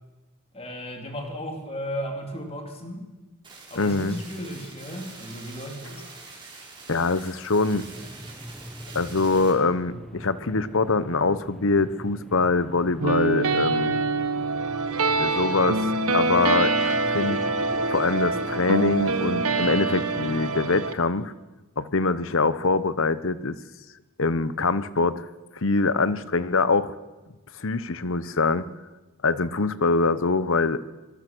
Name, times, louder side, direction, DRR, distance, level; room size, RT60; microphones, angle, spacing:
voice 1, 0.5-3.1 3.7-6.1, equal, 25° left, 2 dB, 3.7 m, -35 dB
sound 1, 3.4-9.5, right 3 dB, 20° right, 5.8 m, -45 dB
voice 2, 3.8-4.2 6.9-7.8 8.9-14.0 15.2-17.4 17.9-21.3 21.8-23.6 24.2-25.2 25.5-26.9 27.6-28.6 29.2-30.8, left 3 dB, 60° left, 15 dB, 1.0 m, -24 dB
sound 2, 7.4-21.2, equal, ahead, 1.2 m, -43 dB
sound 3, 13.0-20.9, right 3 dB, 75° right, 1.4 m, -25 dB
25.0 x 19.5 x 6.3 m, 1.1 s
head